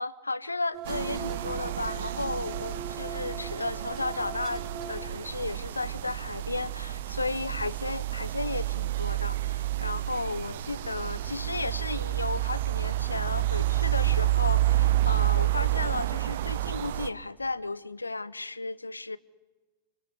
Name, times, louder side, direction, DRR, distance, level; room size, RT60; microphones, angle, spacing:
voice 1, 0.0-19.2, left 3 dB, 80° left, 0.8 m, -34 dB
sound 1, 0.7-5.4 5.8-6.3 6.5-8.5 9.2-9.3 11.2-11.6 11.9-12.0 12.6-13.2 13.6-13.7, right 4 dB, 35° right, 3.0 m, -41 dB
sound 2, 0.9-17.1, right 15 dB, 55° right, 1.0 m, -29 dB
28.0 x 24.0 x 8.2 m
figure-of-eight pair, 90°, 0 cm